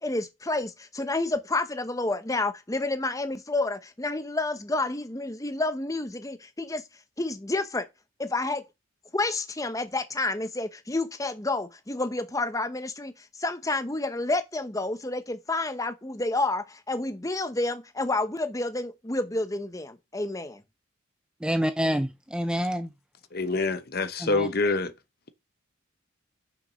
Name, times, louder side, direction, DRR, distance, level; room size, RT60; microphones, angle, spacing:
voice 1, 0.0-6.8 7.2-7.9 8.2-8.6 9.1-20.6, left 2 dB, 15° left, 0.8 m, -29 dB
voice 2, 21.4-22.9 24.2-24.5, equal, 5° right, 0.5 m, -27 dB
voice 3, 23.3-24.9, left 3 dB, 50° left, 0.9 m, -26 dB
6.6 x 6.1 x 6.1 m
head